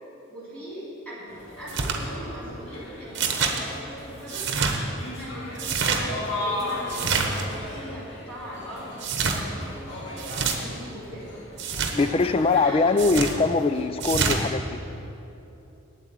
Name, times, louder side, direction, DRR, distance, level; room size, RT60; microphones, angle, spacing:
voice 1, 0.3-4.4 5.2-8.9 9.3-11.2 11.9-12.1 12.5-12.8, equal, 5° left, -11 dB, 3.2 m, -40 dB
sound 1, 1.3-13.9, left 1 dB, 65° left, 2.0 m, -37 dB
sound 2, 1.7-2.0 3.1-3.6 4.3-4.8 5.5-6.0 6.9-7.4 9.0-9.4 10.2-10.6 11.6-11.9 13.0-13.3 14.0-14.4, right 5 dB, 60° right, 1.1 m, -26 dB
voice 2, 11.9-14.8, left 3 dB, 30° left, 12 dB, 0.3 m, -22 dB
8.4 x 8.2 x 9.0 m, 3.0 s
head